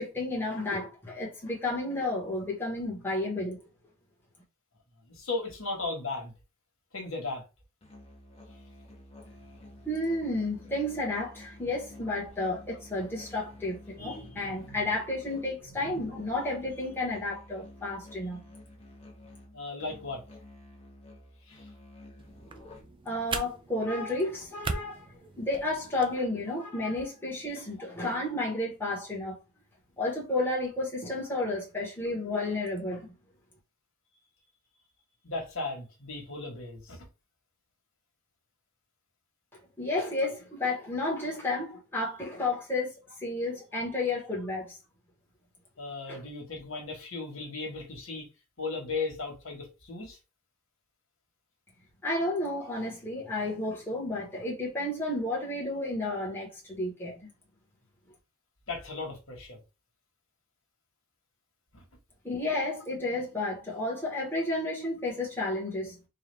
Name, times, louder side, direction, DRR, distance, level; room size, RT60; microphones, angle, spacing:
voice 1, 0.0-3.6 9.8-18.4 23.0-29.4 30.0-33.1 39.8-42.9 43.2-44.8 46.1-46.2 52.0-57.3 62.2-66.0, left 2 dB, 10° left, 1.3 m, -32 dB
voice 2, 5.2-6.3 6.9-7.4 19.5-20.2 21.5-21.6 35.2-37.0 45.8-48.3 48.6-50.2 58.7-59.6 61.7-61.8, left 3 dB, 70° left, 1.6 m, -36 dB
Musical instrument, 7.8-23.1, left 1 dB, 30° left, 1.1 m, -51 dB
sound 1, 22.2-26.2, right 4 dB, 25° right, 0.4 m, -39 dB
4.5 x 2.4 x 3.4 m
head